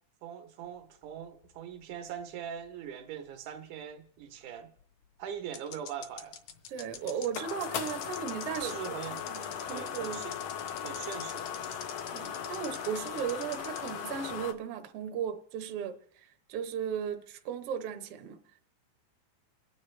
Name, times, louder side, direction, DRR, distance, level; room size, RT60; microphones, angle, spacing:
voice 1, 0.2-4.7 5.2-6.4 8.6-9.3 9.7-10.4 10.8-11.8, right 8 dB, 85° right, 2.5 m, -41 dB
sound 1, 1.0-2.6 2.9-3.0 4.8-4.9 5.5-13.9, left 9 dB, 70° left, 2.0 m, -45 dB
sound 2, 6.6-14.5, left 8 dB, 85° left, 1.1 m, -38 dB
voice 2, 6.7-10.2 12.1-18.4, right 8 dB, 70° right, 1.4 m, -36 dB
28.5 x 9.5 x 3.2 m
omnidirectional pair, 3.5 m